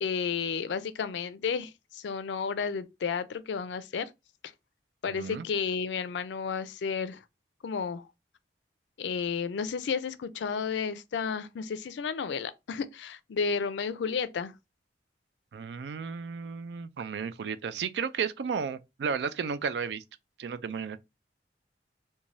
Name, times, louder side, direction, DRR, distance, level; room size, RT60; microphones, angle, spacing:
voice 1, 0.0-4.1 5.0-7.2 7.6-8.1 9.0-14.5, left 6 dB, 85° left, 0.4 m, -32 dB
voice 2, 5.1-5.5 15.5-20.0 20.4-21.0, right 6 dB, 75° right, 0.3 m, -33 dB
3.1 x 2.2 x 2.5 m
head